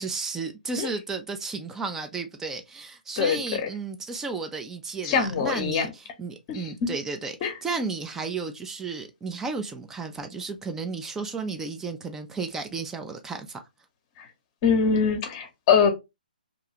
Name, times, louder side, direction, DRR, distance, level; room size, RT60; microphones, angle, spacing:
voice 1, 0.0-13.6, right 4 dB, 10° right, 0.3 m, -33 dB
voice 2, 3.2-3.7 5.0-5.9 6.5-7.0 7.4-7.5 14.2-14.3 14.6-15.9, left 6 dB, 30° left, 0.7 m, -23 dB
2.5 x 2.3 x 2.8 m
figure-of-eight pair, 135°, 5 cm